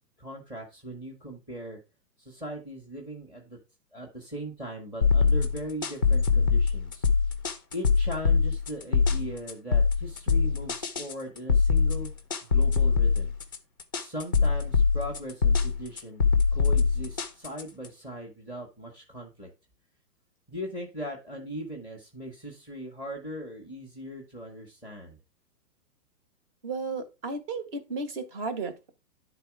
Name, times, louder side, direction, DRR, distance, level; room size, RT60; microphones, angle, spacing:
voice 1, 0.2-1.8 2.2-3.6 3.9-7.1 7.7-12.1 12.4-13.3 14.0-16.2 16.5-19.5 20.5-25.2, equal, 10° right, -1 dB, 1.1 m, -39 dB
sound 1, 5.0-17.9, left 5 dB, 15° left, 0.4 m, -23 dB
voice 2, 26.6-28.9, right 3 dB, 35° right, 8 dB, 1.5 m, -34 dB
10.0 x 4.0 x 4.6 m, 0.28 s
hypercardioid pair, 165°, 48 cm